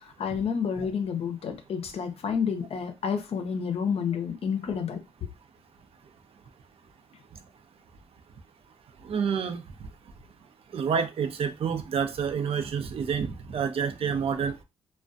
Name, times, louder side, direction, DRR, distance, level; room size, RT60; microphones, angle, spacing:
voice 1, 0.2-5.0, left 6 dB, 60° left, 0.6 m, -29 dB
voice 2, 9.0-9.6 10.7-14.6, right 6 dB, 55° right, 0.5 m, -28 dB
2.3 x 2.2 x 2.5 m
supercardioid pair, 55°, 12 cm